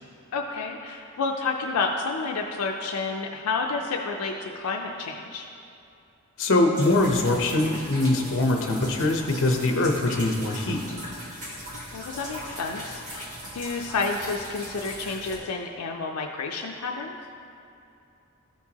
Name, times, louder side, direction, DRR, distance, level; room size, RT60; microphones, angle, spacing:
voice 1, 0.3-5.5 11.9-13.3 13.5-17.1, left 4 dB, 85° left, 1 dB, 0.5 m, -30 dB
voice 2, 6.4-10.8, left 2 dB, 60° left, 2 dB, 0.8 m, -23 dB
sound 1, 6.7-15.4, equal, 35° right, 1.6 m, -39 dB
13.0 x 4.6 x 2.8 m, 2.7 s
head